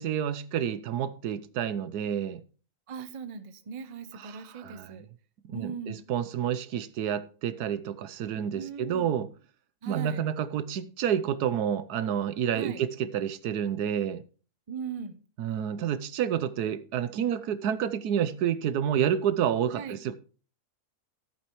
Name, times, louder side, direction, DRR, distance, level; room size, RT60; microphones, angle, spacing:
voice 1, 0.0-2.4 4.2-5.0 5.4-9.3 9.9-14.2 15.4-20.1, right 9 dB, 80° right, 1.3 m, -29 dB
voice 2, 2.9-5.1 5.5-6.0 8.5-9.2 9.8-10.2 12.5-12.8 14.7-15.2 19.7-20.0, right 6 dB, 35° right, 0.5 m, -39 dB
14.0 x 8.8 x 3.0 m
omnidirectional pair, 1.7 m